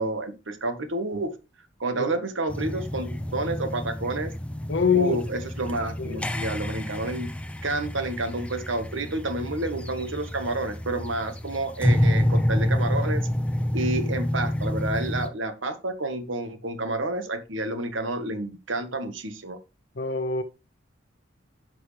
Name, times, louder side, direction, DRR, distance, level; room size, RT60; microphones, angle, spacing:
voice 1, 0.0-1.3 1.8-4.3 4.9-7.3 7.6-13.3 13.7-19.6, right 2 dB, 80° right, 1.5 m, -29 dB
sound 1, 2.5-15.3, left 1 dB, 5° left, 0.5 m, -28 dB
voice 2, 4.7-5.2 6.0-6.2 20.0-20.4, left 6 dB, 65° left, 0.8 m, -24 dB
10.5 x 6.2 x 3.4 m
head